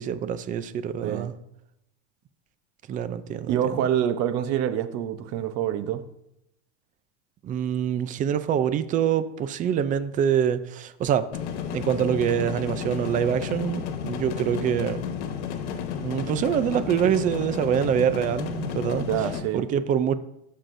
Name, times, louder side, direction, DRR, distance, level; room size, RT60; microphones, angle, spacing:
voice 1, 0.0-1.3 2.9-3.6 7.4-11.3 11.7-15.0 16.0-19.1 19.5-20.1, right 9 dB, 25° right, 0.4 m, -25 dB
voice 2, 3.5-6.0 19.1-19.6, right 10 dB, 45° right, 0.8 m, -26 dB
sound 1, 11.3-19.4, left 7 dB, 80° left, 1.3 m, -32 dB
13.5 x 6.5 x 2.6 m
supercardioid pair, 130°, 34 cm